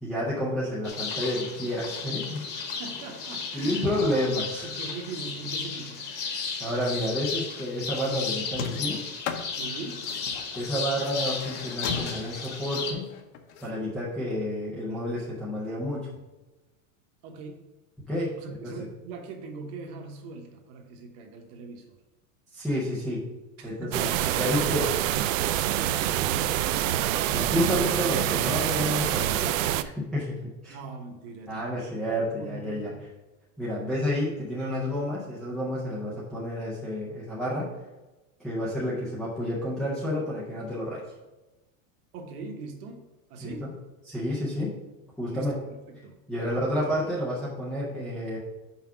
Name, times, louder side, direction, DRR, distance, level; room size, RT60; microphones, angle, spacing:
voice 1, 0.0-2.5 3.5-4.7 6.6-9.0 10.6-13.1 13.6-16.1 18.0-18.3 18.6-18.7 22.5-23.2 23.6-23.9 24.4-24.8 27.3-29.7 30.0-30.7 31.5-32.9 33.6-37.7 38.4-41.0 43.4-43.7 44.1-44.7 45.2-45.5 46.3-48.4, equal, ahead, -10 dB, 0.3 m, -30 dB
sound 1, 0.8-12.9, left 5 dB, 25° left, 1.0 m, -34 dB
voice 2, 2.6-4.2 4.6-6.1 9.5-10.1 17.2-17.7 18.4-22.0 23.6-25.1 30.7-33.0 42.1-43.7 45.3-46.6, right 4 dB, 35° right, 4 dB, 1.0 m, -42 dB
sound 2, 8.5-13.7, left 6 dB, 55° left, 0.9 m, -36 dB
sound 3, 23.9-29.8, right 12 dB, 65° right, 0.5 m, -26 dB
5.8 x 4.8 x 5.9 m, 1.1 s
supercardioid pair, 175°, 42 cm